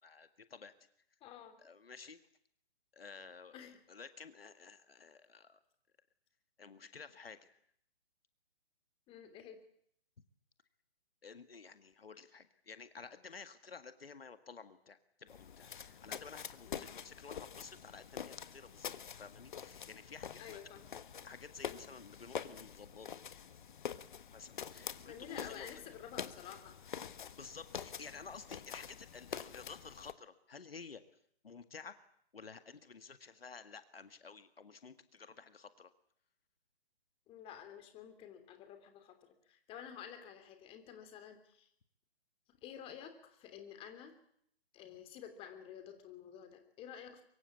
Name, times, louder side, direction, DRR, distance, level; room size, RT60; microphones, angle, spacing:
voice 1, 0.0-0.7 1.6-2.2 2.9-5.6 6.6-7.6 11.2-20.6 21.2-23.3 24.3-25.8 27.3-31.0 31.4-32.0 32.3-35.9, left 5 dB, 65° left, 11 dB, 2.0 m, -52 dB
voice 2, 1.2-1.6 3.5-3.8 9.1-9.6 16.7-16.9 20.4-20.9 25.0-26.8 37.3-39.2 39.5-41.7 42.5-44.2 44.7-47.2, left 9 dB, 15° left, 8 dB, 3.0 m, -51 dB
sound 1, 15.3-30.1, left 8 dB, 50° left, 1.5 m, -46 dB
24.0 x 24.0 x 8.5 m, 0.67 s
figure-of-eight pair, 130°, 31 cm